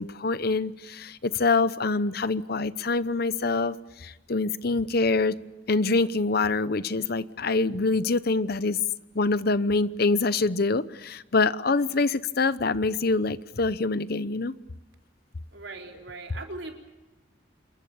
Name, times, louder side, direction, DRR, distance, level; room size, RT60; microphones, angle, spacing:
voice 1, 0.0-5.3 5.7-8.8 9.1-14.5, left 3 dB, 55° left, 0.8 m, -25 dB
voice 2, 15.5-16.7, right 2 dB, 75° right, 4.3 m, -39 dB
27.5 x 22.5 x 7.0 m
head